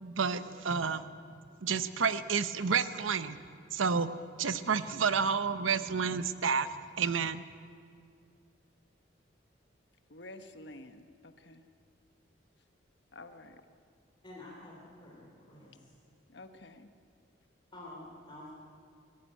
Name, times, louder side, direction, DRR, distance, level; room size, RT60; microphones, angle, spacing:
voice 1, 0.0-1.0 1.6-3.4 3.7-4.1 4.4-6.7 7.0-7.4, right 5 dB, 85° right, 13 dB, 0.8 m, -30 dB
voice 2, 1.1-1.4 10.1-11.6 13.1-13.6 16.3-16.9, left 2 dB, 60° left, 8 dB, 1.2 m, -50 dB
voice 3, 14.2-15.9 17.7-18.5, left 1 dB, 25° left, -4 dB, 3.3 m, -49 dB
21.5 x 14.5 x 8.9 m, 2.3 s
head